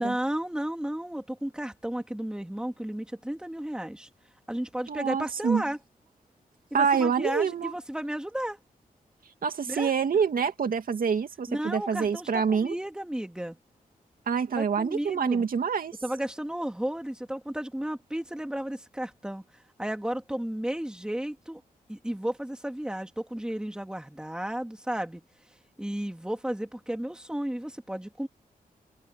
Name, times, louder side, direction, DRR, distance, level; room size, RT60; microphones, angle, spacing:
voice 1, 0.0-4.1 4.5-5.8 6.7-8.6 9.7-9.9 11.5-13.6 14.6-15.5 16.0-19.4 19.8-21.6 21.9-25.2 25.8-28.3, right 1 dB, 5° right, 2.4 m, -33 dB
voice 2, 4.9-5.6 6.7-7.7 9.4-12.7 14.3-16.0, right 6 dB, 70° right, 2.5 m, -26 dB
cardioid pair, 85°, 15 cm